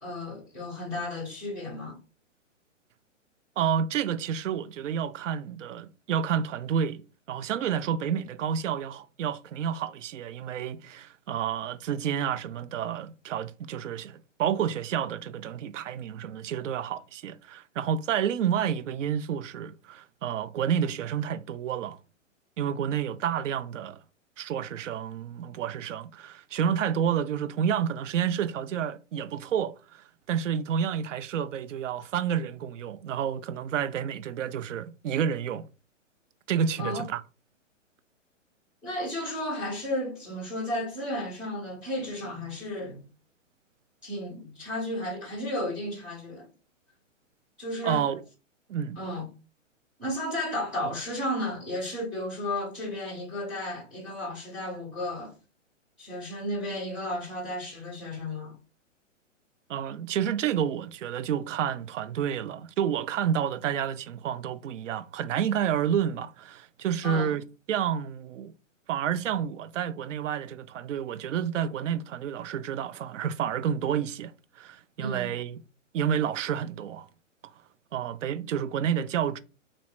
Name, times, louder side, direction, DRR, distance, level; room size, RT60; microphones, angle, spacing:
voice 1, 0.0-2.0 36.8-37.0 38.8-43.1 44.0-46.5 47.6-48.1 49.0-49.3 50.0-55.3 56.0-58.5 67.0-67.4 75.0-75.3, left 1 dB, 5° right, 0.3 m, -33 dB
voice 2, 3.6-7.0 7.3-22.0 22.6-24.0 24.4-35.6 36.5-37.2 47.8-48.2 48.7-49.0 59.7-68.5 68.9-75.6 75.9-77.1 77.9-79.4, right 8 dB, 70° right, 0.5 m, -30 dB
3.0 x 2.6 x 3.1 m
hypercardioid pair, 125°, 38 cm